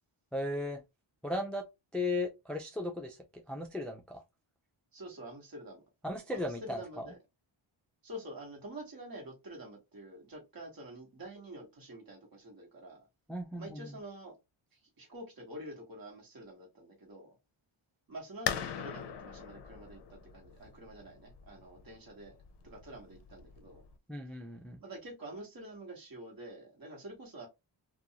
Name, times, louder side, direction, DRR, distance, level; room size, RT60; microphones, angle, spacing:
voice 1, 0.3-0.8 1.2-1.6 1.9-4.2 6.0-7.1 13.3-14.0 24.1-24.8, left 2 dB, ahead, 0.3 m, -36 dB
voice 2, 4.9-5.8 6.3-7.2 8.0-13.1 13.6-14.4 14.7-17.3 18.1-22.4 22.6-23.8 24.8-27.5, right 1 dB, 45° right, 1.3 m, -47 dB
sound 1, 18.5-23.9, left 9 dB, 55° left, 0.5 m, -41 dB
2.5 x 2.3 x 2.7 m
wide cardioid pair, 110°, 49 cm